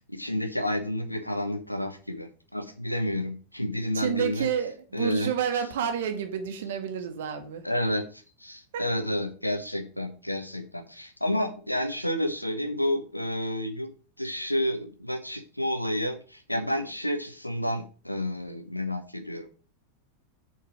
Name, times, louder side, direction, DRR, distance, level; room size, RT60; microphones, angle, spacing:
voice 1, 0.1-4.5 4.9-5.3 7.6-13.9 14.2-19.5, left 1 dB, 90° left, 1.1 m, -30 dB
voice 2, 3.9-7.6 8.7-8.9, right 8 dB, 55° right, 1.6 m, -29 dB
7.0 x 4.5 x 6.2 m
figure-of-eight pair, 90°, 0 cm